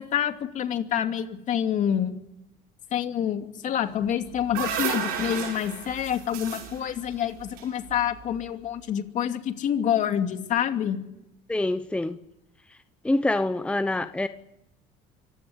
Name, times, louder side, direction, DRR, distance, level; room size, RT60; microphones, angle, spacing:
voice 1, 0.0-2.2 2.9-11.0, left 9 dB, 55° left, 6 dB, 2.6 m, -27 dB
sound 1, 4.1-8.3, right 8 dB, 80° right, 7.0 m, -33 dB
voice 2, 11.5-12.2 13.0-14.3, left 2 dB, 5° left, 10 dB, 0.9 m, -25 dB
25.0 x 15.5 x 10.0 m, 0.84 s
cardioid pair, 125°, 16 cm